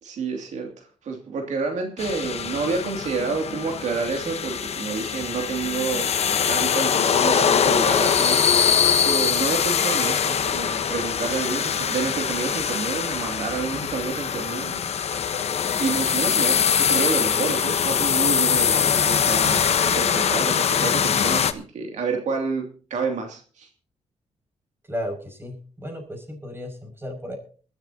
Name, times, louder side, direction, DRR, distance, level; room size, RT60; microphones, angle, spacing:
voice 1, 0.0-6.1 6.5-14.8 15.8-23.7, right 5 dB, 80° right, 3 dB, 2.6 m, -29 dB
sound 1, 2.0-21.5, left 7 dB, 60° left, 1.1 m, -22 dB
voice 2, 24.9-27.4, equal, 20° right, 4 dB, 6.2 m, -34 dB
21.0 x 13.5 x 2.9 m, 0.40 s
cardioid pair, 100°, 12 cm